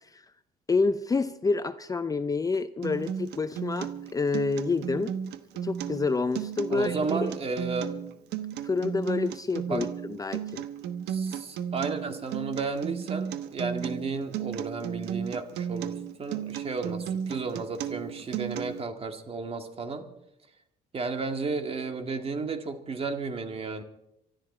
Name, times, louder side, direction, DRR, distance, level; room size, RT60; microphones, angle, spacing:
voice 1, 0.7-5.1 5.6-7.3 8.6-10.7, left 4 dB, 20° left, 12 dB, 0.6 m, -28 dB
Acoustic guitar, 2.8-18.8, right 8 dB, 80° right, 1.1 m, -34 dB
voice 2, 6.7-7.9 9.7-9.8 11.1-20.1 20.9-23.8, right 4 dB, 35° right, 6 dB, 2.0 m, -33 dB
24.5 x 13.0 x 4.4 m, 0.83 s
cardioid pair, 110°, 17 cm